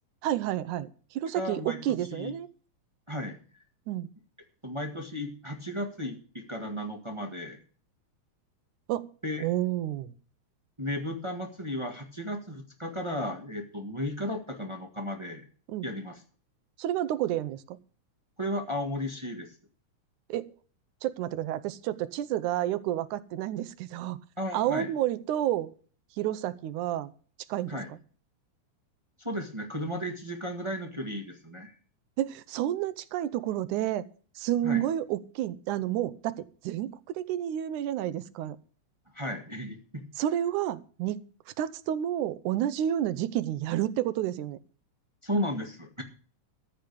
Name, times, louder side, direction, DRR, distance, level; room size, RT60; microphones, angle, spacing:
voice 1, 0.2-2.5 3.9-4.1 8.9-9.1 9.4-10.1 15.7-15.9 16.8-17.8 20.3-20.5 21.0-24.2 24.5-25.7 26.2-27.1 27.5-27.8 32.2-34.1 34.4-38.6 40.2-41.2 41.6-44.6, right 12 dB, 80° right, 16 dB, 2.1 m, -30 dB
voice 2, 1.3-1.8 2.1-2.3 3.1-3.4 4.6-7.6 9.2-9.5 10.8-15.4 15.8-16.2 18.4-19.5 24.4-24.9 27.7-27.9 29.2-31.7 34.6-34.8 39.1-40.0 45.2-46.0, left 1 dB, 25° right, 4 dB, 0.5 m, -34 dB
14.0 x 5.1 x 8.4 m, 0.41 s
omnidirectional pair, 3.6 m